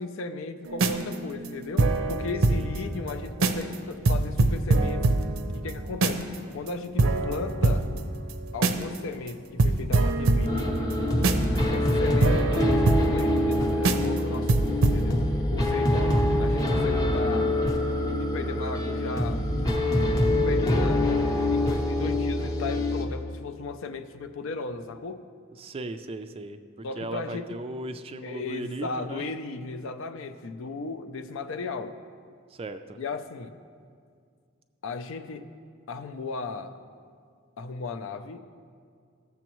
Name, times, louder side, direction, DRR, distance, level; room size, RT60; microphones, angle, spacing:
voice 1, 0.0-5.0 5.5-6.3 6.5-7.9 8.5-11.0 11.7-16.1 16.4-17.5 18.2-19.4 20.3-25.2 26.8-27.6 28.2-32.0 33.0-33.5 34.8-35.5 35.9-36.8 37.6-38.4, left 3 dB, 65° left, 9 dB, 0.5 m, -36 dB
sound 1, 0.7-2.8 3.1-3.2 3.4-3.7 4.0-6.4 6.7-6.8 7.0-9.0 9.3-9.4 9.6-13.5 13.8-14.2 14.5-15.0, right 2 dB, 70° right, 0.6 m, -24 dB
voice 2, 2.5-3.0 15.9-16.3 25.6-26.6 27.0-29.3 32.5-33.0, right 2 dB, 25° right, 9 dB, 0.3 m, -37 dB
sound 2, 10.5-23.1, left 1 dB, 15° left, 0.7 m, -25 dB
14.5 x 7.0 x 3.0 m, 2.2 s
head